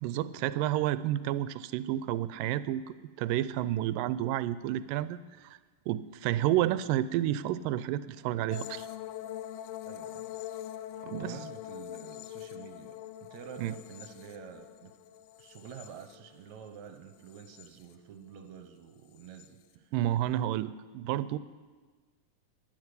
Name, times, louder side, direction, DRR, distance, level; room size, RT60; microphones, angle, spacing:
voice 1, 0.0-2.8 3.2-5.5 5.9-8.9 11.0-11.4 13.6-13.7 19.9-21.4, right 13 dB, 85° right, 15 dB, 2.2 m, -30 dB
sound 1, 8.5-16.7 17.1-17.9 19.2-19.5, left 12 dB, 85° left, 2.3 m, -43 dB
voice 2, 9.9-10.3 11.1-14.9 15.4-19.9, right 7 dB, 65° right, 7 dB, 2.1 m, -48 dB
12.0 x 10.5 x 9.5 m, 1.4 s
omnidirectional pair, 3.9 m